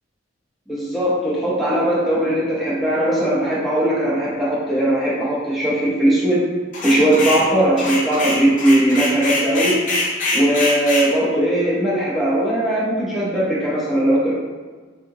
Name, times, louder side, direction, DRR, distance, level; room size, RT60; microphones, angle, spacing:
voice 1, 0.7-6.4 6.8-9.8 10.3-14.3, right 1 dB, ahead, -8 dB, 0.7 m, -19 dB
sound 1, 6.7-7.5 7.8-11.1, left 2 dB, 40° left, 0.6 m, -23 dB
2.7 x 2.5 x 3.6 m, 1.5 s
head